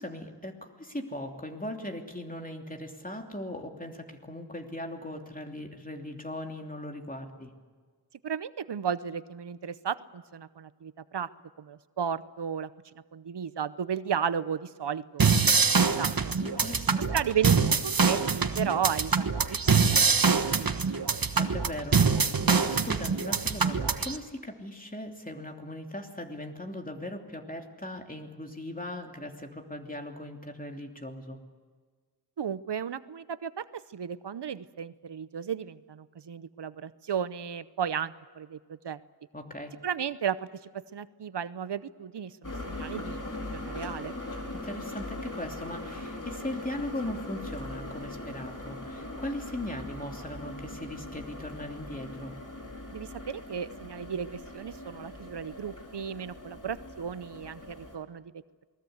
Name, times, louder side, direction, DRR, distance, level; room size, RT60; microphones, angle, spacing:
voice 1, 0.0-7.5 16.4-17.1 21.4-31.4 39.3-39.7 44.5-52.4, left 1 dB, 20° left, 3 dB, 2.9 m, -39 dB
voice 2, 8.2-11.3 11.6-12.7 13.1-15.3 15.8-16.3 17.1-20.7 32.4-38.6 38.8-39.0 39.8-40.5 40.7-44.1 52.9-58.2, right 8 dB, 80° right, 15 dB, 0.8 m, -34 dB
sound 1, 15.2-24.2, right 5 dB, 60° right, 1.3 m, -24 dB
sound 2, 42.4-58.0, left 2 dB, 50° left, 4.2 m, -40 dB
28.0 x 20.0 x 8.0 m, 1.5 s
wide cardioid pair, 70°, 40 cm